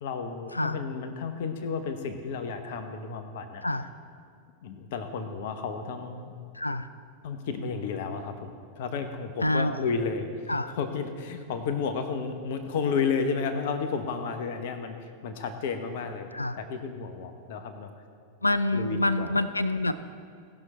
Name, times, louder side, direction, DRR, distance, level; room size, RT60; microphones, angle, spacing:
voice 1, 0.0-3.6 4.6-6.3 7.2-16.3 16.6-17.9 18.7-19.4, left 5 dB, 50° left, 8 dB, 1.0 m, -32 dB
voice 2, 6.5-6.9 9.4-9.8 10.5-10.7 16.3-16.6 18.4-20.0, left 2 dB, 85° left, 14 dB, 0.4 m, -27 dB
18.5 x 6.3 x 4.4 m, 2.3 s
figure-of-eight pair, 90°, 0 cm